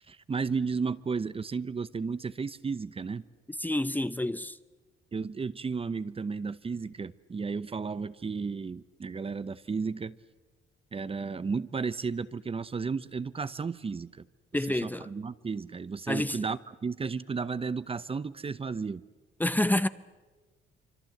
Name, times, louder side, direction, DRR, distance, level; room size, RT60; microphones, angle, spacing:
voice 1, 0.1-3.2 5.1-10.2 10.9-14.2 14.7-19.0, right 5 dB, 30° right, 0.8 m, -33 dB
voice 2, 3.6-4.6 14.5-15.1 16.1-16.4 19.4-19.9, left 1 dB, 10° left, 0.7 m, -28 dB
25.5 x 25.0 x 7.9 m
cardioid pair, 90°, 20 cm